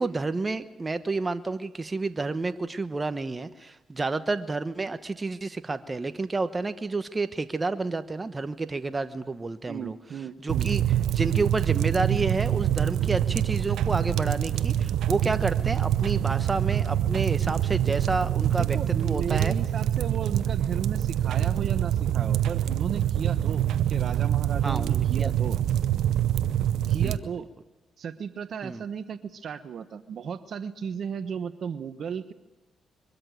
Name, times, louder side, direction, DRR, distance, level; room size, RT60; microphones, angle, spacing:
voice 1, 0.0-10.0 10.4-10.8 11.1-18.8 19.0-19.5 24.6-25.3 27.0-27.1 28.6-28.8, right 3 dB, 30° right, 10 dB, 1.1 m, -30 dB
voice 2, 9.7-10.7 18.6-25.6 26.9-27.5 28.0-32.3, right 7 dB, 65° right, 11 dB, 1.2 m, -35 dB
sound 1, 10.5-27.2, right 11 dB, 80° right, 0.7 m, -25 dB
23.0 x 13.0 x 9.4 m, 1.0 s
supercardioid pair, 65°, 0 cm